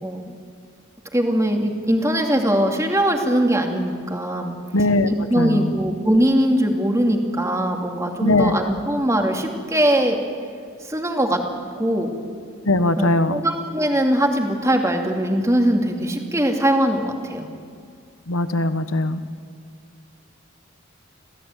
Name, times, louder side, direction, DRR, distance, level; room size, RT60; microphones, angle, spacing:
voice 1, 0.0-0.3 1.1-4.5 5.1-10.2 10.8-11.4 11.8-12.1 13.0-17.5, right 1 dB, 15° right, 3 dB, 2.5 m, -21 dB
voice 2, 4.7-5.7 8.2-8.5 12.6-13.4 18.3-19.2, left 2 dB, 85° left, 11 dB, 1.3 m, -20 dB
27.0 x 17.0 x 9.3 m, 2.3 s
head